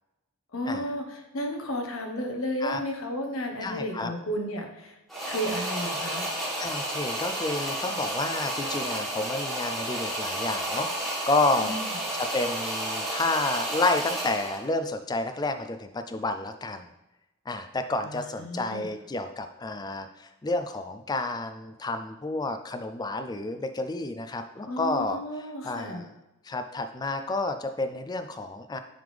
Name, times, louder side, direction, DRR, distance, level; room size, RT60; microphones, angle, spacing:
voice 1, 0.5-5.0 5.2-6.3 11.6-11.8 18.0-18.9 24.7-26.0, equal, 65° left, 3 dB, 1.0 m, -33 dB
voice 2, 3.6-4.1 6.6-11.8 12.1-16.9 17.5-25.2 25.6-26.1 26.4-28.8, left 2 dB, 20° left, 8 dB, 0.3 m, -30 dB
sound 1, 5.1-14.7, right 1 dB, ahead, 1.5 m, -31 dB
9.2 x 3.5 x 3.3 m, 0.98 s
head